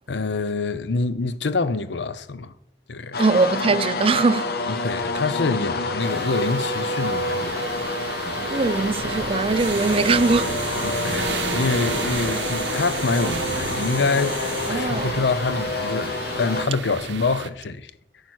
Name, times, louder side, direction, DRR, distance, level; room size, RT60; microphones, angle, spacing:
voice 1, 0.1-2.5 2.9-3.2 4.7-7.5 10.8-14.4 14.7-17.9, left 4 dB, 80° left, 0.6 m, -26 dB
sound 1, 3.1-16.6, left 2 dB, 60° left, 1.1 m, -28 dB
voice 2, 3.2-4.5 8.5-10.6 14.7-15.1, right 3 dB, 30° right, 0.4 m, -21 dB
sound 2, 6.0-17.5, right 5 dB, 80° right, 0.7 m, -32 dB
sound 3, 9.6-14.7, equal, 10° left, 3.9 m, -37 dB
9.8 x 8.7 x 6.2 m
head